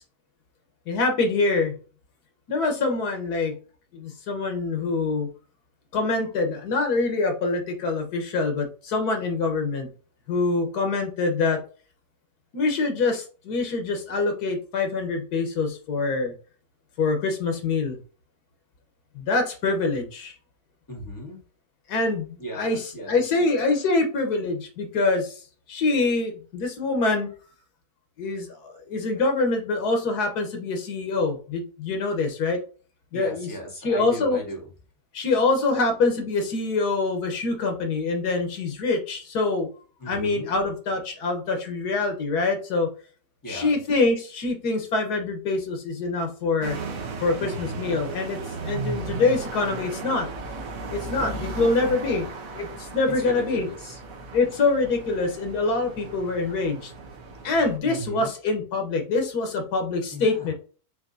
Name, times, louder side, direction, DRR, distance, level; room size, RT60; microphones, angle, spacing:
voice 1, 0.9-1.7 2.5-3.6 3.9-5.3 5.9-9.9 10.3-11.6 12.5-16.3 17.0-18.0 19.1-20.3 21.9-22.8 23.1-25.3 25.7-27.3 28.2-32.6 33.1-33.5 33.8-34.4 35.1-39.7 40.1-42.9 43.5-46.8 47.2-50.3 50.9-52.3 52.5-53.7 54.3-56.9 57.4-60.5, left 3 dB, 90° left, 5 dB, 1.6 m, -25 dB
voice 2, 20.9-21.4 22.4-23.2 33.1-34.7 40.0-40.5 43.4-43.7 47.4-47.8 51.2-52.3 53.2-54.0 57.8-58.3 60.1-60.5, equal, 15° left, -1 dB, 1.4 m, -37 dB
sound 1, 46.6-57.8, right 3 dB, 65° right, 1.3 m, -36 dB
6.5 x 2.7 x 2.7 m, 0.38 s
omnidirectional pair, 1.6 m